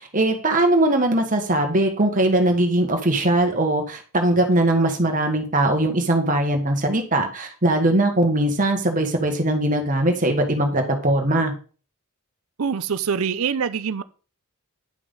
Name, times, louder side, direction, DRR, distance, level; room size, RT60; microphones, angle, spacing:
voice 1, 0.0-11.5, right 1 dB, 35° right, 4 dB, 1.6 m, -20 dB
voice 2, 12.6-14.0, right 6 dB, 70° right, 14 dB, 0.6 m, -24 dB
10.0 x 6.0 x 3.9 m, 0.36 s
head